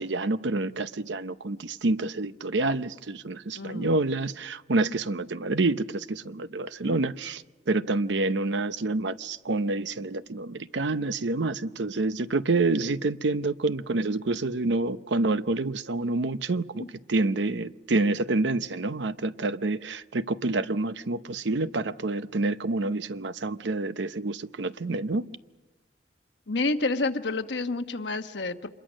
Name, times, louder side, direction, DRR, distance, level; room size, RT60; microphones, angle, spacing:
voice 1, 0.0-25.3, right 2 dB, 85° right, 0.8 m, -28 dB
voice 2, 3.5-4.0 16.8-16.9 26.5-28.7, left 3 dB, 80° left, 1.2 m, -29 dB
26.5 x 22.0 x 6.4 m
head